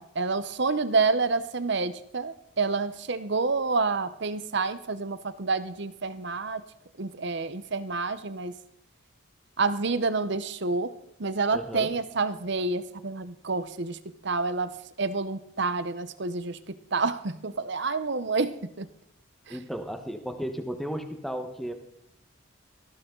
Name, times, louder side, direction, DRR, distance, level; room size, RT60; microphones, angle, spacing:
voice 1, 0.0-6.6 7.0-8.6 9.6-10.9 11.2-18.9 19.5-19.6, right 4 dB, 55° right, 13 dB, 0.9 m, -28 dB
voice 2, 11.5-11.9 19.5-21.7, equal, ahead, 6 dB, 1.2 m, -34 dB
18.5 x 15.0 x 3.9 m, 0.80 s
head